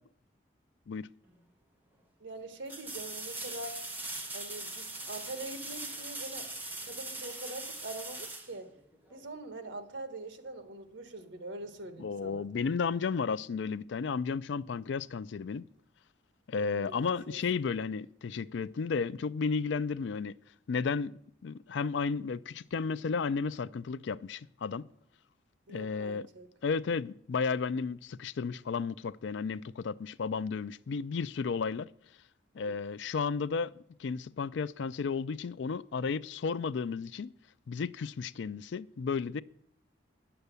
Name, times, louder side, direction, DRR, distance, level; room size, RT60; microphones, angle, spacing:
sound 1, 1.3-1.4 2.7-9.3 12.1-12.2, right 2 dB, 10° right, 1.3 m, -41 dB
voice 1, 2.2-3.9 4.3-6.5 6.8-8.8 9.1-12.5 16.6-17.0 17.3-17.4 25.7-26.5 32.5-32.8, right 2 dB, 75° right, 1.3 m, -43 dB
voice 2, 12.0-15.6 16.5-20.4 20.7-21.1 21.4-24.9 25.7-26.3 26.6-31.9 32.5-33.7 34.0-37.3 37.7-39.4, left 5 dB, 70° left, 0.4 m, -33 dB
10.0 x 6.8 x 8.1 m
head